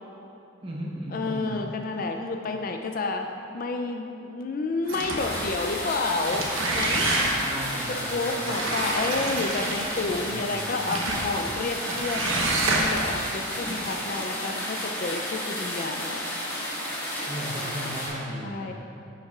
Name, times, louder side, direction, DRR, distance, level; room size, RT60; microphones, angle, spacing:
voice 1, 0.6-1.6 7.4-9.2 10.2-11.0 17.3-18.7, equal, 25° right, -3 dB, 1.0 m, -36 dB
voice 2, 1.1-7.1 7.9-16.2 18.4-18.7, left 3 dB, 45° left, 4 dB, 0.4 m, -30 dB
sound 1, 4.9-5.5 6.1-7.6 8.4-10.1 10.8-11.3 11.8-13.2, right 2 dB, 70° right, 1.0 m, -28 dB
sound 2, 5.1-18.1, equal, 10° left, 1.8 m, -32 dB
9.8 x 7.8 x 2.4 m, 2.8 s
head